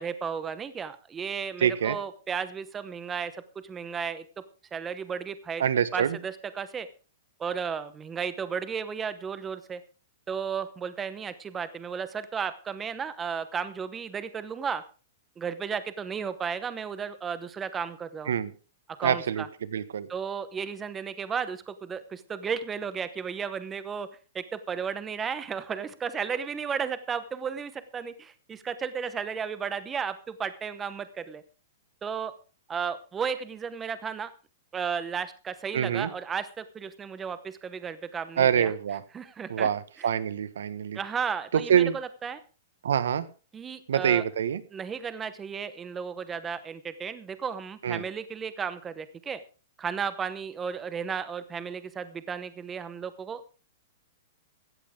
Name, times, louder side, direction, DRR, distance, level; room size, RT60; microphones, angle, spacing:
voice 1, 0.0-4.2 4.7-5.6 5.9-6.9 7.4-9.8 10.3-14.8 15.4-18.3 19.0-19.5 20.1-24.1 24.3-31.4 32.0-32.3 32.7-34.3 34.7-38.7 39.1-39.7 40.9-42.4 43.5-44.2 44.7-49.4 49.8-53.6, right 6 dB, 10° right, 13 dB, 1.0 m, -34 dB
voice 2, 1.6-2.0 5.6-6.2 18.3-18.5 19.0-20.1 35.7-36.1 38.4-39.0 39.5-41.0 41.5-42.0 42.8-43.3 43.9-44.6 47.8-48.1, right 8 dB, 90° right, 15 dB, 1.5 m, -25 dB
16.0 x 13.5 x 3.7 m, 0.35 s
hypercardioid pair, 175°, 0 cm